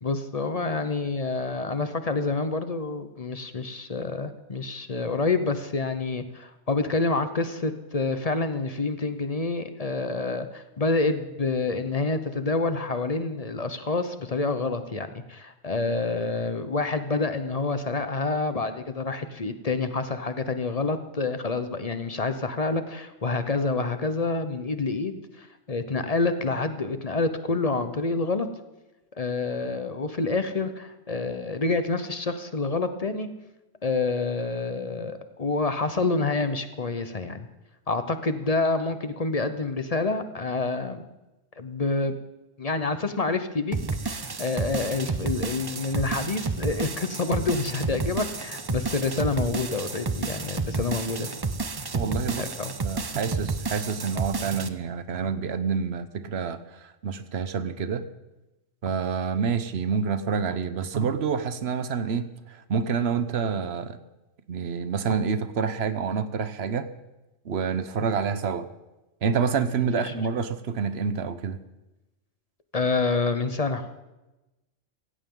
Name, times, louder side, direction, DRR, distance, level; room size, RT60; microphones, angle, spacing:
voice 1, 0.0-28.5 29.1-33.3 33.8-37.5 37.9-41.0 41.6-42.2 42.6-43.8 44.0-51.3 52.4-52.7 69.8-70.1 72.7-73.9, left 3 dB, 35° left, 10 dB, 0.8 m, -28 dB
sound 1, 43.7-54.7, right 4 dB, 30° right, 0.5 m, -31 dB
voice 2, 51.9-52.5 52.8-58.1 58.8-64.0 64.5-66.9 67.4-68.7 69.2-71.6, right 6 dB, 60° right, 12 dB, 1.0 m, -28 dB
16.5 x 16.0 x 3.8 m, 1.0 s
omnidirectional pair, 1.3 m